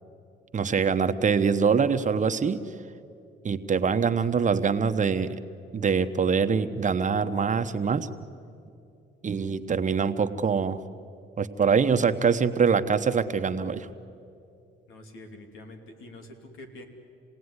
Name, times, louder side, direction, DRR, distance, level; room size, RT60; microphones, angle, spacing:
voice 1, 0.5-2.6 3.4-5.4 5.7-8.1 9.2-10.8 11.4-13.9, right 6 dB, 40° right, 9 dB, 1.1 m, -24 dB
voice 2, 14.9-16.8, left 1 dB, 85° left, 5 dB, 3.0 m, -46 dB
28.0 x 18.0 x 9.8 m, 2.6 s
cardioid pair, 90°, 20 cm